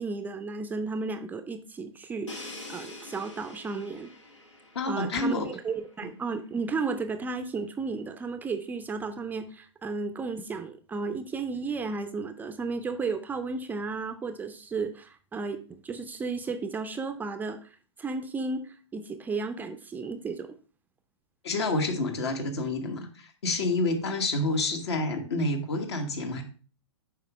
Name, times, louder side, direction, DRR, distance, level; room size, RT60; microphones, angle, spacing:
voice 1, 0.0-4.1 4.9-20.5, right 4 dB, 10° right, 8 dB, 0.4 m, -34 dB
Crash cymbal, 2.3-6.1, left 2 dB, 90° left, 1.5 m, -45 dB
voice 2, 4.7-5.5 6.0-6.1 21.4-26.4, left 2 dB, 65° left, 5 dB, 1.4 m, -28 dB
7.4 x 5.0 x 3.0 m, 0.39 s
figure-of-eight pair, 110°, 15 cm